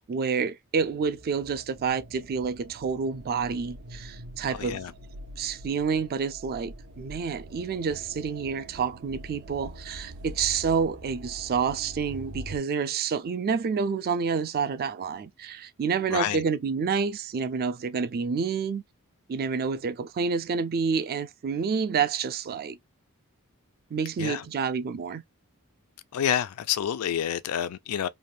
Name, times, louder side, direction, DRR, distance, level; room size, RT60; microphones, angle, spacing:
voice 1, 0.0-4.8 5.4-18.8 19.3-22.8 23.9-25.2, right 6 dB, 45° right, 0.4 m, -28 dB
sound 1, 0.8-12.6, right 1 dB, 75° right, 0.7 m, -44 dB
voice 2, 4.6-4.9 16.1-16.4 24.2-24.4 26.1-28.1, left 9 dB, 75° left, 0.4 m, -28 dB
3.3 x 2.2 x 2.5 m
head